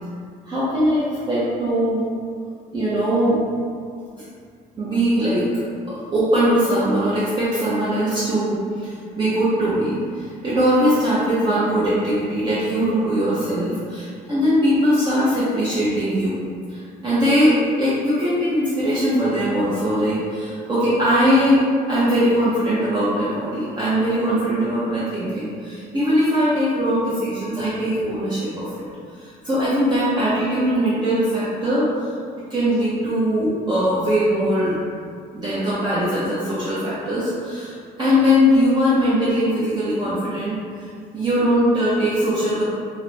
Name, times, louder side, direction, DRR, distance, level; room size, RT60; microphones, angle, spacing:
voice 1, 0.5-2.1 2.7-3.4 4.8-5.5 5.9-16.4 16.7-28.9 29.4-31.9 32.5-34.8 35.3-37.7 38.0-40.6 41.1-42.6, equal, 25° right, -11 dB, 0.5 m, -20 dB
2.4 x 2.0 x 3.1 m, 2.2 s
cardioid pair, 110°, 17 cm